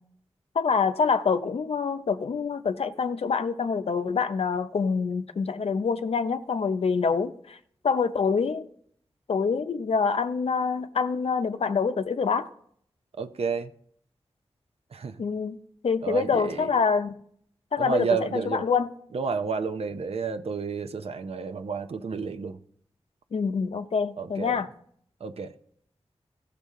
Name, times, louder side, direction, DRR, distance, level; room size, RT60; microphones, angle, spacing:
voice 1, 0.5-7.6 7.8-8.6 9.3-12.5 15.2-15.6 15.8-17.1 17.7-18.9 23.3-24.7, left 5 dB, 80° left, 0.6 m, -26 dB
voice 2, 13.2-13.7 14.9-15.2 16.0-16.7 17.8-18.6 19.1-22.6 24.2-24.6 25.2-25.5, right 5 dB, 85° right, 0.6 m, -30 dB
15.5 x 6.7 x 3.7 m
wide cardioid pair, 95°, 10 cm